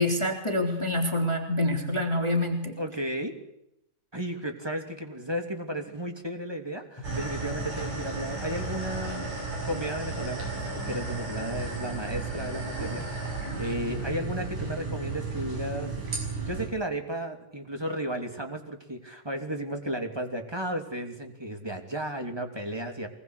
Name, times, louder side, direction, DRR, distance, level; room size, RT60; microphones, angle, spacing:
voice 1, 0.0-2.8, left 1 dB, 10° left, 4 dB, 3.1 m, -26 dB
voice 2, 2.8-3.3 4.1-9.3 9.6-13.0 13.6-15.9 16.5-23.1, right 1 dB, 10° right, 5 dB, 2.5 m, -34 dB
sound 1, 7.0-16.7, right 3 dB, 80° right, 8.3 m, -34 dB
25.0 x 20.5 x 8.3 m, 0.83 s
omnidirectional pair, 3.6 m